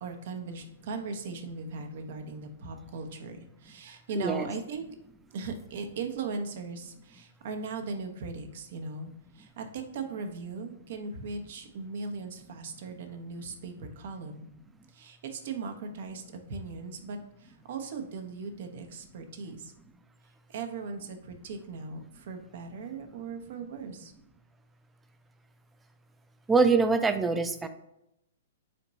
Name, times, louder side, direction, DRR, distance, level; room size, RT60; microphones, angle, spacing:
voice 1, 0.0-4.8 5.3-14.5 14.9-19.7 20.5-24.1, right 4 dB, 55° right, 5 dB, 0.7 m, -38 dB
voice 2, 4.2-4.5 26.5-27.7, right 4 dB, 10° right, 9 dB, 0.4 m, -24 dB
4.3 x 2.9 x 4.0 m, 0.82 s
hypercardioid pair, 115°, 0 cm